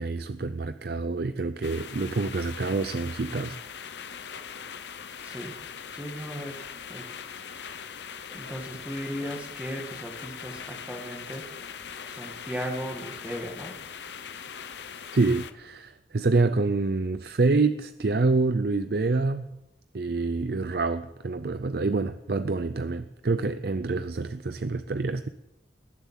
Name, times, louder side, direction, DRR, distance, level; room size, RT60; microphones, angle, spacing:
voice 1, 0.0-3.6 15.1-19.5 19.9-25.3, right 3 dB, 55° right, 12 dB, 0.5 m, -27 dB
sound 1, 1.6-15.5, left 7 dB, 70° left, 0.8 m, -41 dB
voice 2, 5.2-5.5 5.9-7.2 8.3-11.4 12.1-13.7, equal, 10° right, 1 dB, 1.8 m, -37 dB
19.5 x 7.4 x 7.5 m, 0.95 s
head